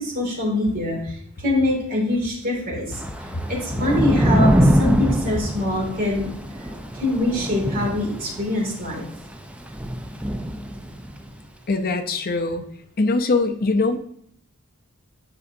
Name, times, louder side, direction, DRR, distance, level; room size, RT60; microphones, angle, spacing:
voice 1, 0.0-3.0 3.5-6.3 6.9-9.0, left 1 dB, 40° right, -2 dB, 2.5 m, -24 dB
Thunder / Rain, 2.9-11.3, equal, 5° right, 0.4 m, -23 dB
voice 2, 11.7-12.6 13.0-14.0, left 3 dB, 45° left, 6 dB, 0.6 m, -22 dB
9.5 x 5.1 x 2.6 m, 0.68 s
head